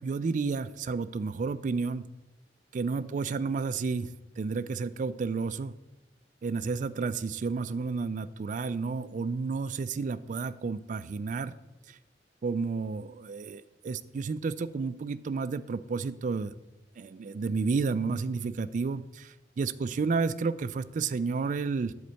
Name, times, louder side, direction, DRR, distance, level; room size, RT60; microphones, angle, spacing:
voice 1, 0.0-2.1 2.7-5.7 6.4-11.6 11.9-12.0 12.4-16.6 17.0-21.9, right 4 dB, 45° right, 14 dB, 0.3 m, -31 dB
8.0 x 4.3 x 6.9 m, 1.0 s
head